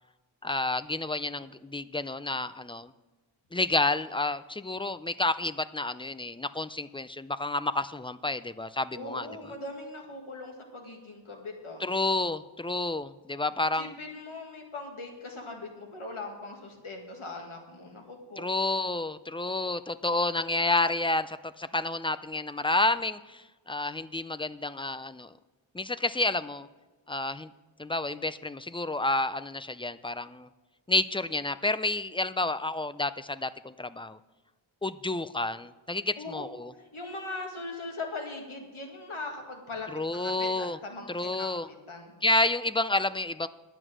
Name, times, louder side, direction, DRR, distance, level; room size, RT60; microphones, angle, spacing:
voice 1, 0.4-2.9 3.5-9.3 11.8-13.9 18.4-25.3 25.7-26.7 27.1-27.5 27.8-30.5 30.9-34.2 34.8-36.7 39.9-40.8 41.1-41.7 42.2-43.5, left 2 dB, 10° left, 13 dB, 0.3 m, -30 dB
voice 2, 8.9-11.8 13.7-18.5 36.2-36.4 36.8-41.5 41.9-42.1, left 2 dB, 90° left, 2 dB, 2.0 m, -40 dB
11.0 x 8.0 x 6.2 m, 1.2 s
wide cardioid pair, 55°, 48 cm